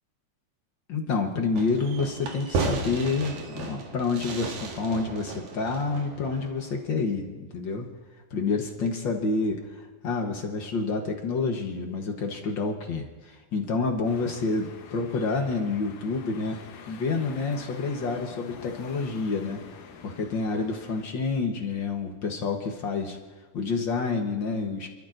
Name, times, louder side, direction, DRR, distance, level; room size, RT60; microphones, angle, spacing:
voice 1, 0.9-7.9 8.3-16.6 16.9-19.6 20.0-23.2 23.5-24.9, left 4 dB, 60° left, 2 dB, 1.2 m, -28 dB
Fireworks, 1.6-6.8, right 4 dB, 70° right, 2.8 m, -34 dB
sound 1, 14.1-21.0, left 6 dB, 75° left, 2.6 m, -46 dB
29.0 x 13.5 x 2.6 m, 1.3 s
omnidirectional pair, 3.6 m